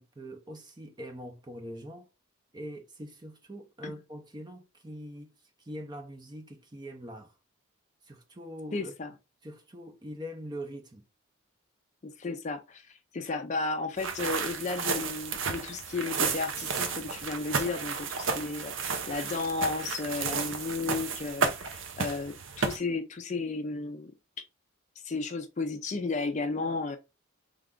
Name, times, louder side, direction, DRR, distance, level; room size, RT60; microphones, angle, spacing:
voice 1, 0.0-2.1 2.5-5.3 5.6-7.3 8.0-8.9 9.4-11.0, equal, 20° right, 0.5 m, -43 dB
voice 2, 8.7-9.1 12.0-24.1 24.4-24.5 25.0-27.0, left 3 dB, 35° left, 0.4 m, -33 dB
sound 1, 14.0-22.8, right 5 dB, 65° right, 0.6 m, -32 dB
3.3 x 2.4 x 3.5 m
head